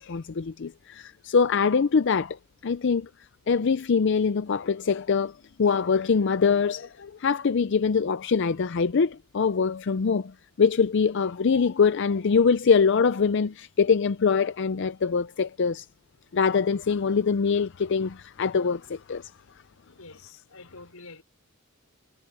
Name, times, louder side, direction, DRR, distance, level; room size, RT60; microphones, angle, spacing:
voice 1, 0.0-3.1 3.5-5.3 5.6-15.9 16.3-19.3, left 5 dB, 55° left, 0.5 m, -23 dB
voice 2, 19.8-21.2, left 3 dB, 85° left, 5.8 m, -47 dB
head